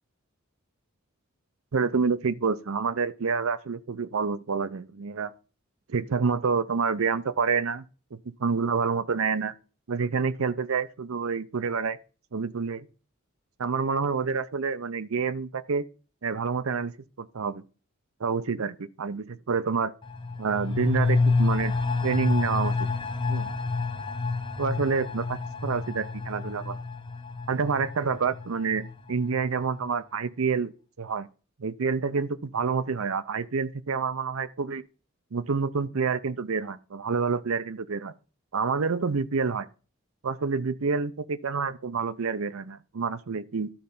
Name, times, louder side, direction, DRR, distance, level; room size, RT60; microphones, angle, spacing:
voice 1, 1.7-5.3 5.9-7.8 8.1-9.5 9.9-12.0 12.3-12.9 13.6-15.9 16.2-17.6 18.2-19.9 20.4-21.7 22.0-22.9 23.3-23.5 24.6-26.8 27.5-30.7 31.0-31.3 31.6-34.8 35.3-38.1 38.5-39.7 40.2-43.7, right 5 dB, 85° right, 0.6 m, -28 dB
sound 1, 20.0-29.4 29.8-29.9, left 3 dB, 25° left, 0.6 m, -28 dB
12.0 x 4.4 x 5.4 m
head